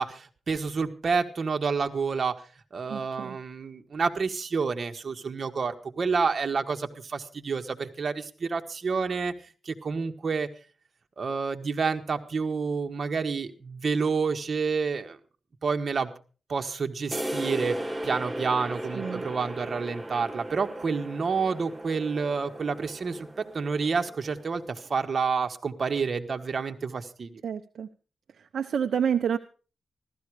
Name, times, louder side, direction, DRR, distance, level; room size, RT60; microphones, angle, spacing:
voice 1, 0.0-2.4 2.7-9.3 9.6-10.5 11.2-15.2 15.6-16.1 16.5-17.8 18.0-27.4, right 5 dB, 50° right, 6 dB, 1.6 m, -29 dB
voice 2, 2.9-3.4 19.0-19.2 27.4-27.9 28.5-29.4, right 7 dB, 75° right, 7 dB, 0.8 m, -28 dB
sound 1, 17.1-24.6, right 1 dB, 10° right, 1.4 m, -37 dB
15.5 x 13.5 x 4.9 m, 0.37 s
cardioid pair, 90°, 0 cm